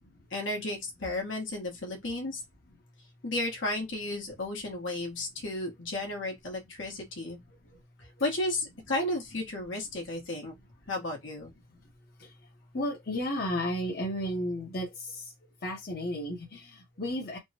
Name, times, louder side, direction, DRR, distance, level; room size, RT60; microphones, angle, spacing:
voice 1, 0.3-2.4 3.2-7.4 8.2-10.5 10.9-11.5, left 2 dB, 80° left, 1.2 m, -33 dB
voice 2, 7.2-8.2 10.2-10.5 11.5-17.4, equal, 50° left, 0.9 m, -35 dB
3.3 x 2.1 x 2.8 m
head